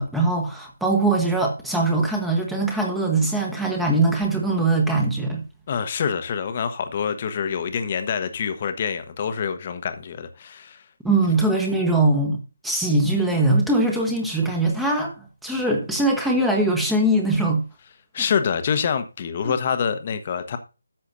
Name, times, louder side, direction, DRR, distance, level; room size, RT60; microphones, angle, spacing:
voice 1, 0.0-5.4 11.0-15.1 15.4-17.6, right 2 dB, ahead, 1.1 m, -21 dB
voice 2, 5.7-10.8 18.1-20.6, left 7 dB, 30° left, 1.0 m, -26 dB
13.0 x 7.0 x 2.6 m
figure-of-eight pair, 150°, 0 cm